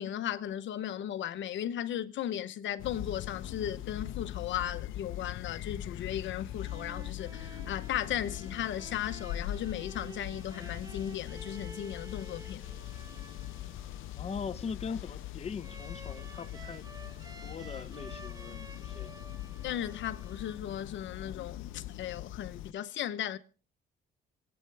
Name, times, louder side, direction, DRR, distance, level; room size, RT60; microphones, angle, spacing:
voice 1, 0.0-12.6 19.6-23.4, left 10 dB, 70° left, 0.9 m, -36 dB
sound 1, 2.8-22.7, left 13 dB, 85° left, 0.6 m, -41 dB
sound 2, 6.4-21.0, right 3 dB, 20° right, 1.1 m, -52 dB
voice 2, 14.2-16.9 17.4-19.1, left 6 dB, 30° left, 0.7 m, -40 dB
26.0 x 8.8 x 3.4 m
cardioid pair, 90°, 20 cm